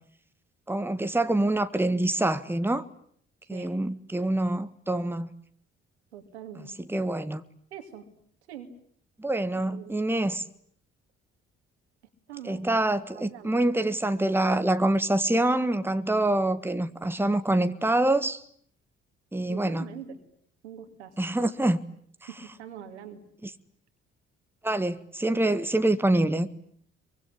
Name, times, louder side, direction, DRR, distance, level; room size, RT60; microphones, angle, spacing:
voice 1, 0.7-2.8 3.5-5.3 6.9-7.4 9.2-10.4 12.4-18.4 19.3-19.9 21.2-21.8 23.4-23.5 24.6-26.5, right 1 dB, 5° right, 1.6 m, -25 dB
voice 2, 6.1-6.7 7.7-8.0 8.5-8.7 9.5-10.1 12.3-12.6 13.1-13.6 19.5-20.2 20.6-21.3 22.3-23.2, right 8 dB, 85° right, 2.6 m, -43 dB
24.0 x 24.0 x 9.9 m
hypercardioid pair, 45°, 33 cm